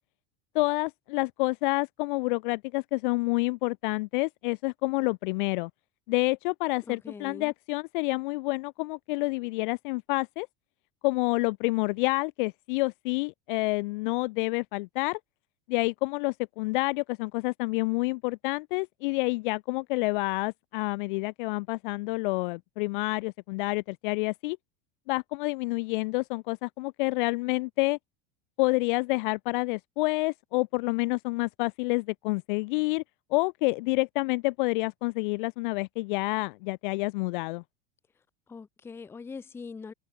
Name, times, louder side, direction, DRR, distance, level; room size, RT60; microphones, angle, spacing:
voice 1, 0.5-5.7 6.1-10.5 11.0-15.2 15.7-24.6 25.1-28.0 28.6-33.0 33.3-37.6, left 25 dB, 60° left, 0.5 m, -28 dB
voice 2, 6.9-7.5 38.5-39.9, left 5 dB, 10° left, 0.7 m, -42 dB
open air
supercardioid pair, 175°, 29 cm